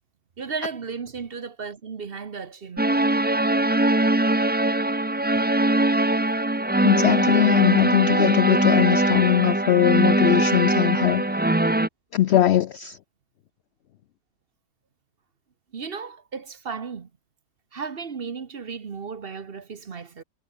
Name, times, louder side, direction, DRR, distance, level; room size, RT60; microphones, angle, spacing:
voice 1, 0.4-3.0 5.5-6.0 15.7-17.1 17.7-20.2, right 5 dB, 40° right, 1.2 m, -35 dB
sound 1, 2.8-11.9, right 1 dB, 10° right, 0.5 m, -21 dB
voice 2, 6.8-11.4 12.1-13.0, left 12 dB, 80° left, 0.6 m, -21 dB
omnidirectional pair, 1.7 m